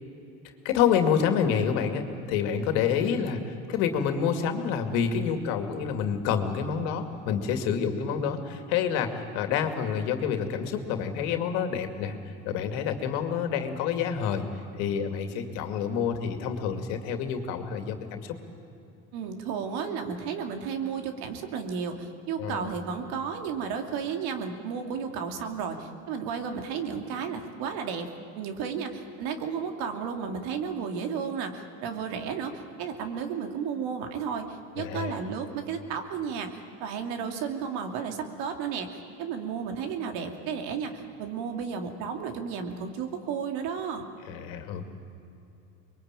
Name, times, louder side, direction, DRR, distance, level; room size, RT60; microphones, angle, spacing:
voice 1, 0.6-12.1 12.5-14.4 14.8-18.3 22.4-22.7 34.8-35.2 44.3-44.9, left 7 dB, 75° left, 6 dB, 2.5 m, -28 dB
voice 2, 19.1-28.1 28.3-44.1, right 6 dB, 70° right, 5 dB, 2.8 m, -33 dB
24.0 x 22.0 x 9.0 m, 2.8 s
supercardioid pair, 90°, 39 cm